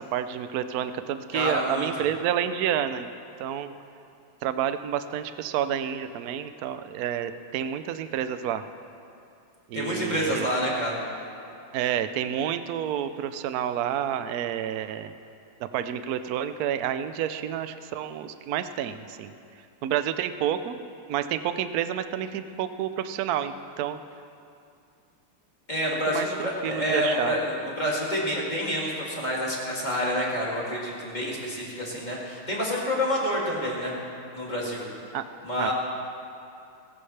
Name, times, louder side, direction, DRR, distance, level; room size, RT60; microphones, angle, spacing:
voice 1, 0.0-3.1 3.4-3.7 4.4-8.6 9.7-10.5 11.7-15.1 15.6-19.3 19.8-20.8 21.1-24.0 26.1-27.4 35.1-35.3 35.6-35.7, right 10 dB, 80° right, 10 dB, 0.8 m, -29 dB
voice 2, 1.3-2.1 9.7-11.0 25.7-33.9 34.3-34.9 35.4-35.7, equal, 20° left, -5 dB, 2.7 m, -28 dB
20.0 x 17.5 x 3.3 m, 2.5 s
omnidirectional pair, 2.4 m